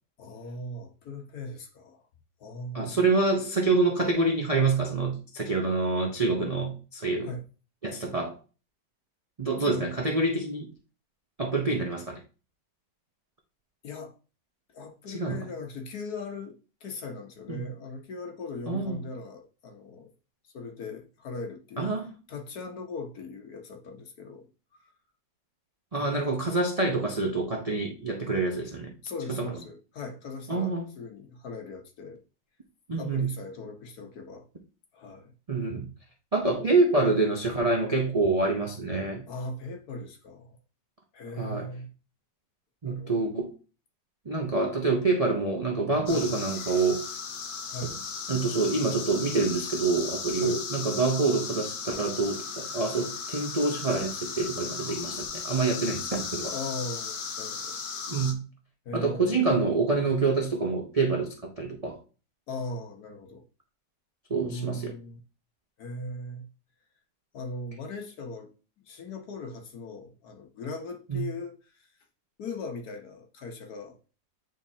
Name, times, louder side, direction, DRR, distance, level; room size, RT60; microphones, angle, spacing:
voice 1, 0.2-2.0 2.4-3.0 7.2-7.4 9.6-9.9 13.8-14.1 14.7-20.1 20.5-21.9 22.3-24.9 25.9-26.3 29.0-32.2 33.0-34.5 34.9-35.3 39.3-40.6 41.1-41.9 42.8-43.3 46.1-46.2 47.7-48.0 50.4-50.6 56.5-57.8 58.8-59.3 62.5-63.4 64.4-65.2 65.8-66.5 67.3-68.5 68.8-71.9 72.4-74.0, left 2 dB, 60° left, 1.5 m, -39 dB
voice 2, 2.7-7.3 7.8-8.4 9.4-10.7 11.4-12.2 15.1-15.5 17.5-17.6 18.7-19.0 21.8-22.1 25.9-28.9 29.3-29.5 30.5-30.9 32.9-33.3 35.5-35.9 36.3-39.3 41.4-41.7 42.8-43.5 44.3-47.1 48.3-56.5 58.1-58.4 58.9-62.0 64.3-64.9 71.1-71.2, right 3 dB, 70° right, 0.3 m, -26 dB
sound 1, 46.1-58.3, left 5 dB, 80° left, 1.5 m, -36 dB
9.0 x 3.9 x 2.7 m
omnidirectional pair, 1.9 m